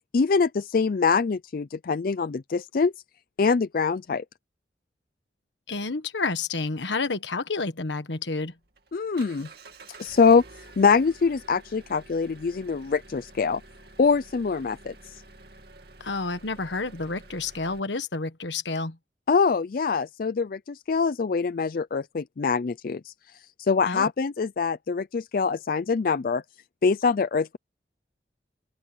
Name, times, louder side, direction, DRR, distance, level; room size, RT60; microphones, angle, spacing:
voice 1, 0.1-2.9 3.4-4.2 8.9-9.5 10.0-10.4 10.8-13.6 14.0-15.2 19.3-23.1 23.6-26.4 26.8-27.6, left 5 dB, 50° left, 0.4 m, -24 dB
voice 2, 5.7-8.5 16.0-19.0 23.8-24.1, left 3 dB, 85° left, 1.4 m, -30 dB
Engine, 8.4-17.8, right 3 dB, 60° right, 2.5 m, -49 dB
open air
head